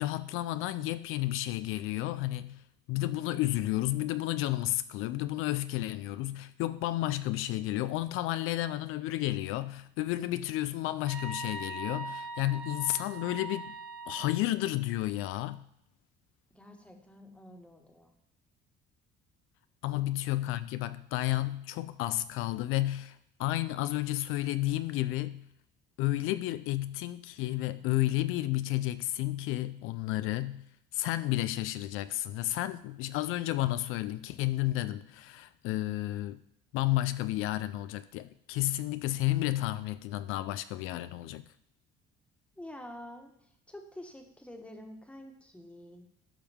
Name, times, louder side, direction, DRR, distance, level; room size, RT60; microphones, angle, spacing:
voice 1, 0.0-2.6 2.9-13.8 14.1-15.6 19.8-25.4 26.0-30.6 30.9-36.4 36.7-41.4, left 16 dB, 80° left, 0.4 m, -32 dB
sound 1, 11.1-14.3, right 3 dB, 65° right, 4.0 m, -40 dB
voice 2, 16.5-18.1 19.9-20.0 42.6-46.0, left 1 dB, 5° left, 1.4 m, -48 dB
13.5 x 5.4 x 3.5 m
cardioid pair, 110°, 21 cm